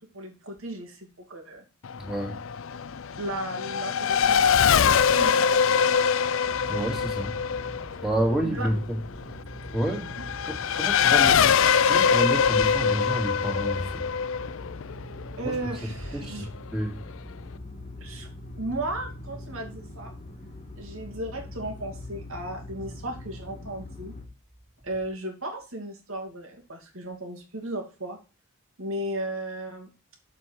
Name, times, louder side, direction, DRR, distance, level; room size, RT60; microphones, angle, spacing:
voice 1, 0.0-1.6 3.2-5.3 8.5-8.7 15.4-16.5 18.0-18.3 18.6-20.1 20.8-24.1 24.8-28.2 28.8-29.9, right 1 dB, 65° right, 2.6 m, -35 dB
Race car auto racing / Accelerating revving vroom, 1.8-15.9, left 7 dB, 60° left, 0.4 m, -23 dB
voice 2, 2.0-2.4 6.7-7.4 8.0-9.0 9.7-10.1 10.4-14.1 15.4-15.6 16.1-17.0, right 1 dB, ahead, 2.4 m, -29 dB
sound 1, 6.4-24.3, left 1 dB, 30° left, 1.6 m, -42 dB
7.2 x 6.4 x 4.6 m
head